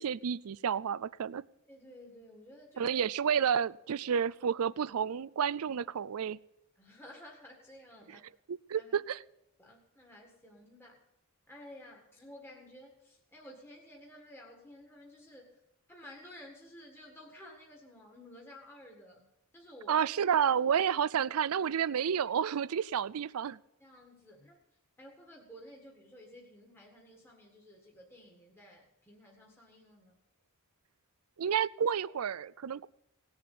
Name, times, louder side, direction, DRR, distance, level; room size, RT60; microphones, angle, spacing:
voice 1, 0.0-1.4 2.8-6.4 8.5-9.2 19.9-23.6 31.4-32.9, right 7 dB, 75° right, 20 dB, 0.4 m, -30 dB
voice 2, 1.7-3.0 6.8-8.2 8.7-9.0 9.6-11.0 11.5-15.6 15.9-19.3 19.5-20.1 23.8-24.6 25.0-30.1, left 1 dB, 10° left, -1 dB, 1.8 m, -53 dB
18.0 x 7.2 x 8.5 m, 0.83 s
head